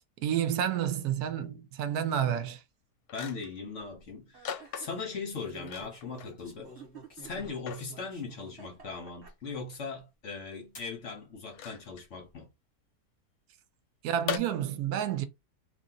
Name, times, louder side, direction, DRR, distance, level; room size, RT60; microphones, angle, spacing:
voice 1, 0.2-2.6 14.0-15.3, right 9 dB, 75° right, 1.1 m, -30 dB
sound 1, 2.6-2.7 3.1-3.6 4.4-5.2 5.6-6.4 6.7-6.8 7.4-7.9 9.3-9.4 11.5-12.1 14.3-14.4, left 8 dB, 70° left, 1.1 m, -38 dB
voice 2, 3.1-6.7 7.2-12.5, left 4 dB, 55° left, 1.0 m, -39 dB
sound 2, 3.6-4.0 5.3-8.6 9.2-9.3 10.7-11.0 11.8-12.3, right 1 dB, 15° left, 1.3 m, -51 dB
sound 3, 4.3-5.0 6.6-7.5 8.4-9.7, right 7 dB, 50° right, 0.9 m, -51 dB
2.8 x 2.7 x 3.7 m
omnidirectional pair, 1.7 m